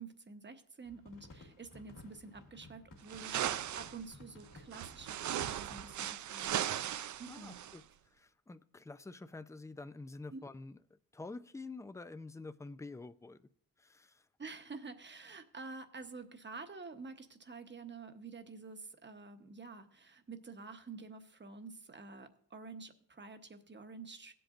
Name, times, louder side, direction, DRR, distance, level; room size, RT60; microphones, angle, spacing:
voice 1, 0.0-6.8 7.2-7.6 10.3-10.4 14.4-24.3, right 4 dB, 35° right, 8 dB, 1.1 m, -49 dB
sound 1, 0.9-6.0, left 2 dB, 70° left, 2.4 m, -57 dB
sound 2, 3.1-4.0 4.7-7.8, right 11 dB, 60° right, 0.4 m, -38 dB
voice 2, 7.3-13.5 13.8-14.3, left 3 dB, 10° left, 11 dB, 0.4 m, -48 dB
17.0 x 7.8 x 2.5 m, 0.65 s
cardioid pair, 70°, 34 cm